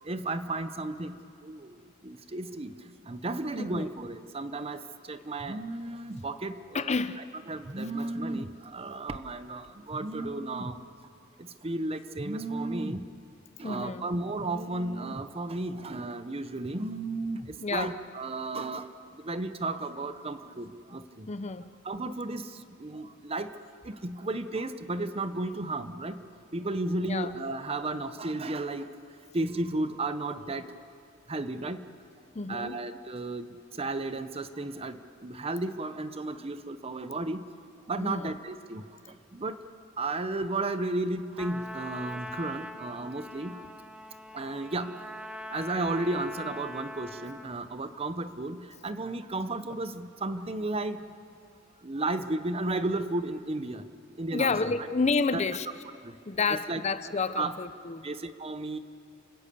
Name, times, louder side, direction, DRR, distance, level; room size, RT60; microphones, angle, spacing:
voice 1, 0.0-7.0 7.5-10.8 11.4-13.1 13.6-21.3 21.8-26.3 26.5-28.9 29.3-30.7 31.3-31.9 32.5-37.5 37.9-39.6 40.0-43.6 44.3-45.0 45.5-51.1 51.8-53.9 54.2-54.8 55.3-55.4 56.0-56.2 56.5-56.8 57.4-57.5 58.0-58.8, right 2 dB, 30° right, 11 dB, 0.8 m, -34 dB
voice 2, 3.6-3.9 6.7-7.2 13.6-14.1 17.6-18.0 21.3-21.7 27.0-27.3 32.3-32.8 38.0-38.4 54.3-55.7 56.3-58.1, left 4 dB, 35° left, 12 dB, 0.6 m, -30 dB
Trumpet, 41.4-47.6, left 1 dB, 5° right, 0.9 m, -42 dB
29.5 x 17.0 x 6.9 m, 2.4 s
head